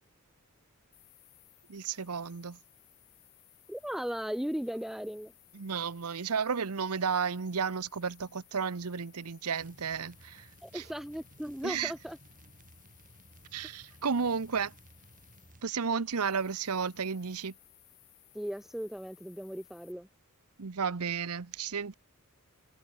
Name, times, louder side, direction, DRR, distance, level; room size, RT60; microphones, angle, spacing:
sound 1, 0.9-19.9, left 17 dB, 55° left, 4.0 m, -62 dB
voice 1, 1.7-2.6 5.5-10.5 10.7-10.8 11.6-11.9 13.5-14.7 15.6-17.5 20.6-21.9, right 6 dB, 85° right, 0.8 m, -33 dB
voice 2, 3.7-5.3 10.6-12.2 18.3-20.1, equal, ahead, 0.3 m, -37 dB
sound 2, 9.6-15.7, right 1 dB, 35° right, 2.2 m, -58 dB
head